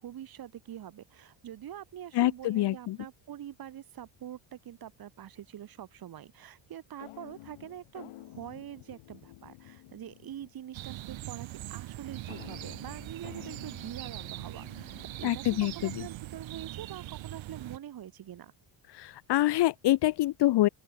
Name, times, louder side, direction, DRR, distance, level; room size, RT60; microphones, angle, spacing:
voice 1, 0.0-15.4 15.7-18.5, right 11 dB, 45° right, 2.7 m, -44 dB
voice 2, 2.1-3.0 15.2-16.1 18.9-20.7, left 15 dB, 55° left, 0.9 m, -26 dB
sound 1, 7.0-10.7 12.3-15.9, left 17 dB, 80° left, 4.0 m, -51 dB
sound 2, 10.7-17.8, right 15 dB, 65° right, 2.9 m, -42 dB
open air
cardioid pair, 155°, 50 cm